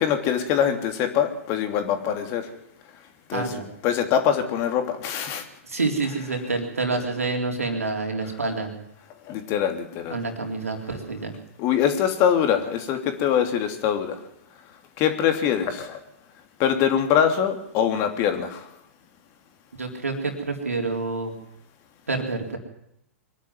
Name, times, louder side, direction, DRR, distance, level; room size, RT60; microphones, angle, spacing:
voice 1, 0.0-2.4 3.3-3.4 3.8-5.4 9.3-10.2 11.6-14.2 15.0-16.0 16.6-18.6, left 9 dB, 40° left, 6 dB, 3.2 m, -23 dB
voice 2, 3.3-3.7 5.6-8.7 10.1-11.3 19.8-21.3 22.1-22.6, right 3 dB, 90° right, 3 dB, 3.8 m, -27 dB
23.5 x 11.5 x 9.7 m, 0.77 s
hypercardioid pair, 115°, 8 cm